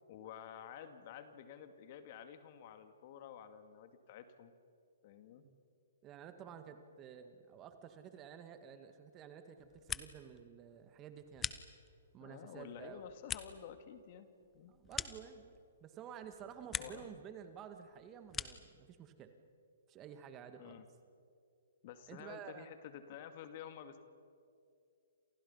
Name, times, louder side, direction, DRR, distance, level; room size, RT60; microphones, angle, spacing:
voice 1, 0.1-4.5 5.0-5.4 12.2-14.3 14.5-14.7 16.5-17.1 20.6-20.9 21.8-24.0, left 9 dB, 45° left, 9 dB, 2.2 m, -51 dB
voice 2, 6.0-11.5 12.1-13.0 14.7-15.5 15.8-19.3 19.9-20.8 22.1-22.7, right 8 dB, 25° right, 8 dB, 2.0 m, -52 dB
sound 1, 9.6-10.4 10.7-12.1 12.6-15.8 16.2-17.1 17.4-18.8, left 8 dB, 15° left, 1.0 m, -45 dB
30.0 x 27.5 x 5.7 m, 2.4 s
hypercardioid pair, 130°, 0 cm